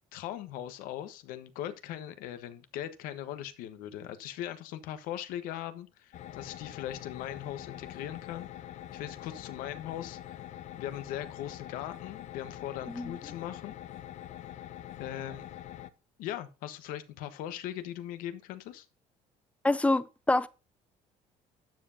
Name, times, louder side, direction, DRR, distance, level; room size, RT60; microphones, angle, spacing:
voice 1, 0.1-8.5 8.9-10.4 10.8-13.8 15.0-15.4 16.2-18.9, left 11 dB, 80° left, 1.3 m, -39 dB
sound 1, 6.1-15.9, left 11 dB, 55° left, 0.8 m, -44 dB
voice 2, 19.6-20.5, left 2 dB, 10° left, 0.5 m, -26 dB
12.0 x 7.7 x 2.8 m
cardioid pair, 120°, 14 cm